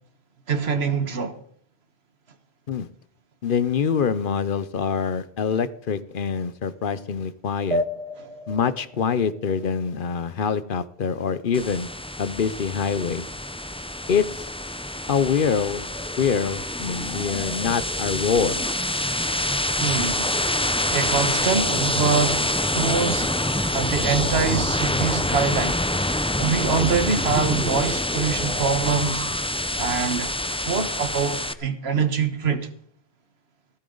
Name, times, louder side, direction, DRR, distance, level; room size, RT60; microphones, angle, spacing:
voice 1, 0.5-1.4 8.2-8.3 19.8-23.3 23.7-25.8 26.4-29.2 29.8-30.3 30.6-32.7, right 5 dB, 85° right, 1.6 m, -24 dB
voice 2, 3.4-7.8 8.5-11.9 12.2-13.3 14.1-14.5 15.1-15.8 16.2-18.6, left 6 dB, 60° left, 0.9 m, -25 dB
sound 1, 7.7-10.7, equal, 35° right, 0.7 m, -32 dB
sound 2, 11.5-31.5, left 1 dB, 5° left, 0.5 m, -26 dB
16.0 x 14.0 x 3.9 m
omnidirectional pair, 1.0 m